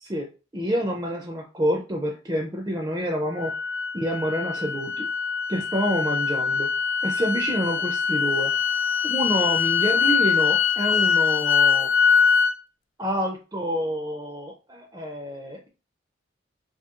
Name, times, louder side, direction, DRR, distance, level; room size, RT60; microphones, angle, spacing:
voice 1, 0.5-3.5 3.9-5.1 5.5-6.7 7.0-8.5 9.0-11.9 13.0-15.7, equal, 20° right, 2 dB, 0.4 m, -28 dB
sound 1, 3.4-12.5, left 6 dB, 75° left, 0.3 m, -23 dB
2.9 x 2.7 x 3.5 m, 0.33 s
head